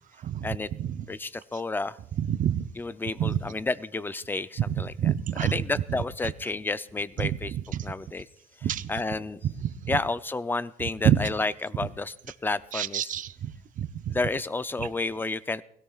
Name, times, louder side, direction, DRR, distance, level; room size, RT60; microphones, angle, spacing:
voice 1, 1.1-2.0 2.7-5.1 5.4-7.5 7.8-8.3 8.6-9.4 9.9-12.1 12.4-13.2 14.1-15.6, left 3 dB, 10° left, 14 dB, 0.5 m, -31 dB
voice 2, 2.3-2.6 3.2-3.4 5.0-5.5 7.7-7.8 8.6-8.9 11.0-11.3 12.7-13.5 13.8-14.1, right 10 dB, 50° right, 11 dB, 0.8 m, -26 dB
23.0 x 17.0 x 2.4 m, 0.73 s
cardioid pair, 110°, 17 cm